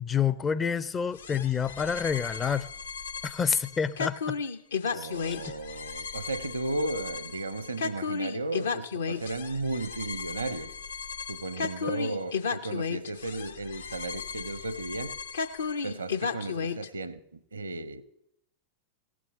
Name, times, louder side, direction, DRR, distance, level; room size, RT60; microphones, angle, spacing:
voice 1, 0.0-2.7 3.2-4.4 4.9-5.4, left 7 dB, 20° left, 0.4 m, -28 dB
sound 1, 1.2-16.9, left 5 dB, 70° left, 0.7 m, -35 dB
voice 2, 4.9-10.7 11.3-15.2 15.8-18.0, right 2 dB, 75° right, 0.7 m, -35 dB
16.5 x 6.2 x 8.3 m
figure-of-eight pair, 90°, 0 cm